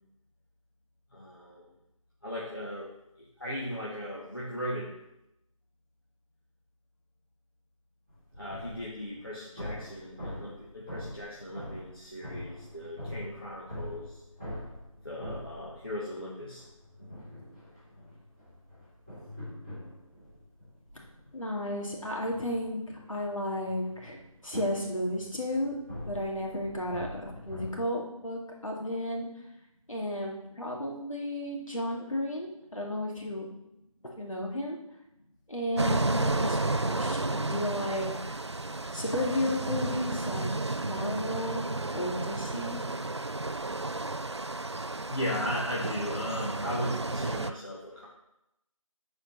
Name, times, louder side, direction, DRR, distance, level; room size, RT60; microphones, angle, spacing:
voice 1, 1.1-1.7 2.2-4.9 8.4-14.2 15.0-16.6 45.1-48.1, equal, 40° left, -6 dB, 1.6 m, -37 dB
sound 1, 8.1-16.2 16.6-27.7, left 1 dB, 10° left, 2.1 m, -44 dB
voice 2, 21.3-24.2 24.4-25.7 26.1-29.3 29.9-33.5 34.2-34.8 35.5-38.4 38.9-40.5 40.8-41.7 41.9-42.8, left 1 dB, 65° left, -1 dB, 2.6 m, -33 dB
sound 2, 35.8-47.5, right 2 dB, 50° right, 0.4 m, -32 dB
9.6 x 4.7 x 5.7 m, 0.86 s
figure-of-eight pair, 175°, 18 cm